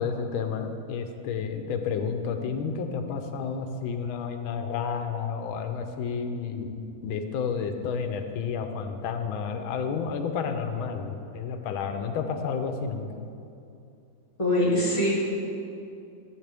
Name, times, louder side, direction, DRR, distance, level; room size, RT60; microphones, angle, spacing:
voice 1, 0.0-13.1, left 6 dB, 90° left, 6 dB, 1.5 m, -31 dB
voice 2, 14.4-15.1, left 1 dB, 15° left, -7 dB, 1.9 m, -23 dB
12.0 x 7.4 x 3.4 m, 2.6 s
omnidirectional pair, 2.2 m